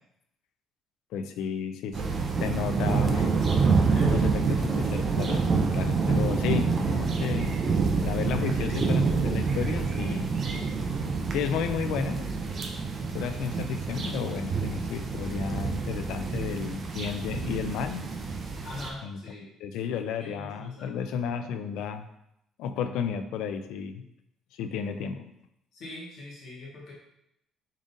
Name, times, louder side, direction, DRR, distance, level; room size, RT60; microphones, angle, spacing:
voice 1, 1.1-2.0 2.4-3.4 3.7-3.8 4.1-7.5 8.0-10.3 10.8-10.9 11.3-12.3 13.1-18.0 19.0-19.2 19.6-22.1 22.6-24.0 24.5-25.3, left 7 dB, 75° left, 8 dB, 0.4 m, -32 dB
sound 1, 1.9-18.9, right 4 dB, 30° right, 0.4 m, -27 dB
voice 2, 3.8-4.1 18.6-19.5 20.2-20.9 25.7-26.9, left 2 dB, 50° left, -5 dB, 1.4 m, -42 dB
5.1 x 3.7 x 2.6 m, 0.80 s
cardioid pair, 175°, 0 cm